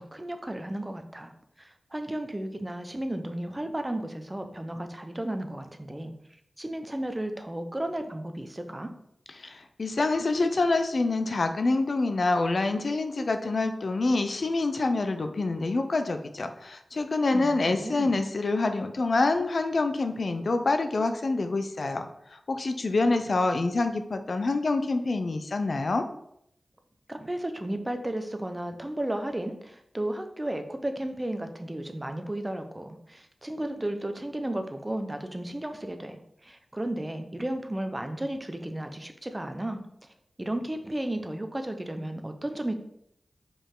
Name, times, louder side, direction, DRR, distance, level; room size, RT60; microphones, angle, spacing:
voice 1, 0.0-1.3 1.6-6.1 6.6-8.9 17.3-18.1 27.1-40.1 40.4-42.8, right 1 dB, 25° right, 7 dB, 0.8 m, -34 dB
voice 2, 9.4-26.1, left 3 dB, 65° left, 7 dB, 0.6 m, -26 dB
5.0 x 5.0 x 3.8 m, 0.73 s
cardioid pair, 50°, 0 cm